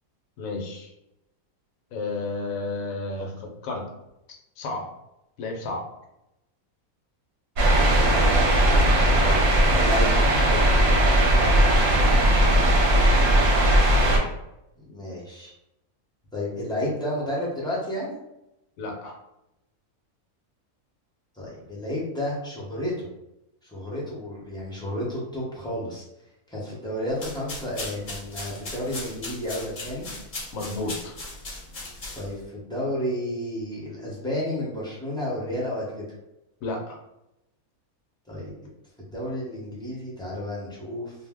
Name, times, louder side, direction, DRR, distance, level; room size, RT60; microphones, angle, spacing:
voice 1, 0.4-0.9 1.9-3.9 4.6-4.9 5.4-5.9 11.3-12.0 18.8-19.2 30.5-31.1 36.6-37.0, left 2 dB, 70° left, 2 dB, 1.0 m, -32 dB
sound 1, 7.6-14.2, right 1 dB, 65° right, 1.0 m, -18 dB
voice 2, 8.1-10.7 14.9-15.5 16.3-18.2 21.3-23.1 23.6-26.0 26.5-30.1 32.2-36.0 38.3-38.5 39.1-41.1, left 1 dB, 5° left, -6 dB, 0.4 m, -31 dB
sound 2, 27.1-32.5, left 2 dB, 45° left, 0.7 m, -38 dB
2.5 x 2.0 x 3.5 m, 0.88 s
omnidirectional pair, 1.6 m